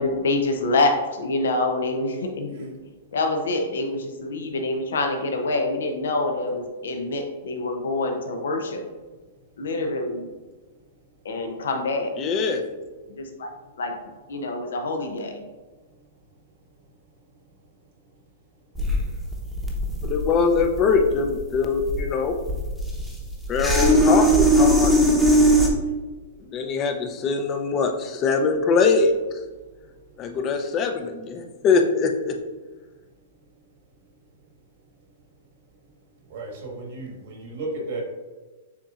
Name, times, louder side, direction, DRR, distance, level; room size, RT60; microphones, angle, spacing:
voice 1, 0.0-2.7 3.1-8.8 9.6-10.3 11.2-12.1 13.2-13.5 13.8-13.9 14.3-15.4, left 2 dB, 80° left, 4 dB, 0.6 m, -26 dB
voice 2, 12.2-12.6 20.0-22.4 23.5-25.1 26.4-29.4 30.2-32.4, left 4 dB, 30° left, 5 dB, 0.5 m, -22 dB
sound 1, 18.8-25.7, right 1 dB, ahead, 0.8 m, -20 dB
voice 3, 36.3-38.0, right 2 dB, 65° right, 0 dB, 1.4 m, -34 dB
6.8 x 2.8 x 2.4 m, 1.3 s
hypercardioid pair, 140°, 0 cm